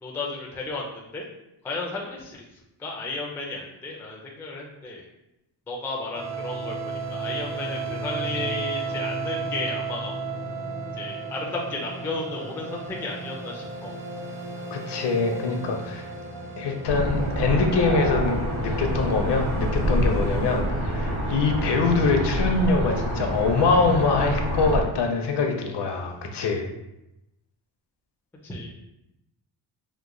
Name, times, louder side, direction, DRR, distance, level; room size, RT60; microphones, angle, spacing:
voice 1, 0.0-1.3 1.6-2.4 2.8-5.0 5.7-10.2 10.9-13.9 28.4-28.7, left 3 dB, 5° left, -2 dB, 0.3 m, -33 dB
sound 1, 6.1-20.6, right 3 dB, 35° right, 0.6 m, -34 dB
voice 2, 14.7-16.1 16.6-26.7, left 4 dB, 60° left, 4 dB, 0.6 m, -24 dB
sound 2, 16.9-24.8, equal, 70° right, 1.0 m, -26 dB
3.0 x 2.1 x 3.7 m, 0.89 s
wide cardioid pair, 135°, 47 cm